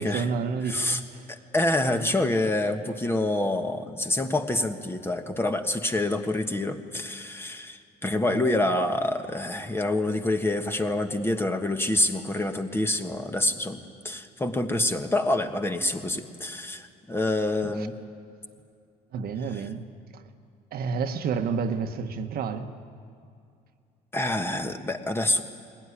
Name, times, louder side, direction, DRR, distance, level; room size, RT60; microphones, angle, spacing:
voice 1, 0.0-1.2 8.3-8.6 17.6-17.9 19.1-19.9 20.1-20.2 20.7-22.7, right 5 dB, 65° right, 7 dB, 1.3 m, -30 dB
voice 2, 0.7-1.0 1.3-13.8 14.0-17.9 24.1-25.4, left 1 dB, 15° left, 6 dB, 1.5 m, -27 dB
22.0 x 18.0 x 10.0 m, 2.4 s
cardioid pair, 110°, 17 cm